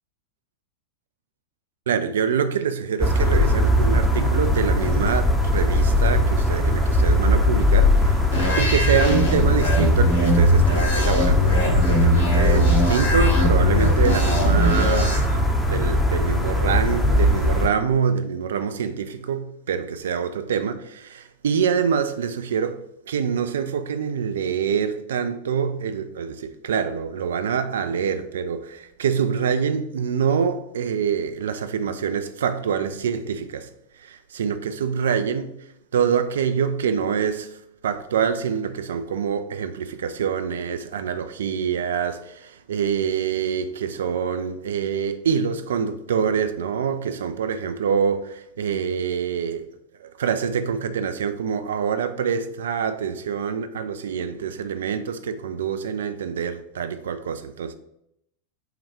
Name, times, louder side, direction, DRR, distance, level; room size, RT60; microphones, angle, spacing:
voice 1, 1.9-22.8 23.1-33.7 34.0-35.6 35.9-37.6 37.8-49.7 50.0-57.7, right 7 dB, 60° right, 0.3 m, -25 dB
sound 1, 3.0-17.7, left 1 dB, ahead, 0.6 m, -20 dB
sound 2, 8.3-15.2, equal, 75° left, 1.1 m, -22 dB
5.7 x 2.3 x 2.9 m
figure-of-eight pair, 90°, 0 cm